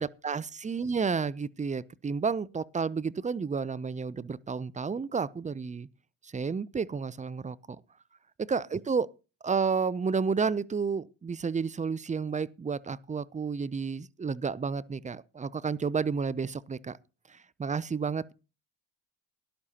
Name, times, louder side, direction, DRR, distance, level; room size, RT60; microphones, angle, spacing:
voice 1, 0.0-5.9 6.2-7.8 8.4-9.1 9.4-17.0 17.3-18.3, right 5 dB, 15° right, 0.5 m, -31 dB
17.5 x 11.5 x 2.8 m
hypercardioid pair, 55°, 46 cm